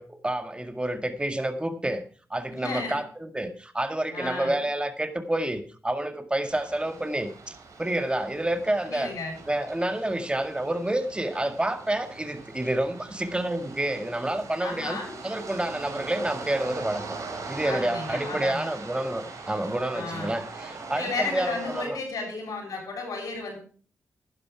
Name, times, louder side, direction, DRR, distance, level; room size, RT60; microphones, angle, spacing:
voice 1, 0.0-2.0 2.3-9.1 9.5-15.0 15.2-17.0 17.5-22.0, right 1 dB, 15° right, 8 dB, 1.9 m, -29 dB
voice 2, 2.5-3.0 4.1-4.6 8.9-9.4 14.6-15.1 17.6-18.7 19.9-20.3 20.9-23.6, left 3 dB, 75° left, 0 dB, 7.1 m, -33 dB
sound 1, 6.5-21.9, right 4 dB, 65° right, 4.0 m, -41 dB
11.0 x 11.0 x 4.8 m, 0.42 s
supercardioid pair, 50°, 6 cm